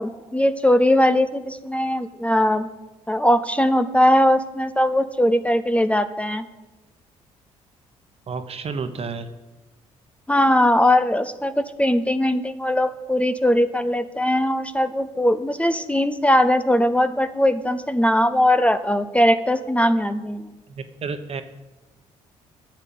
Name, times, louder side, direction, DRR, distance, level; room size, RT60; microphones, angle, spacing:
voice 1, 0.0-2.7 3.1-6.4 10.3-20.5, left 1 dB, 10° left, 11 dB, 0.7 m, -20 dB
voice 2, 8.3-9.3 20.7-21.4, right 5 dB, 45° right, 9 dB, 1.2 m, -31 dB
10.5 x 6.7 x 9.1 m, 1.1 s
supercardioid pair, 65°, 14 cm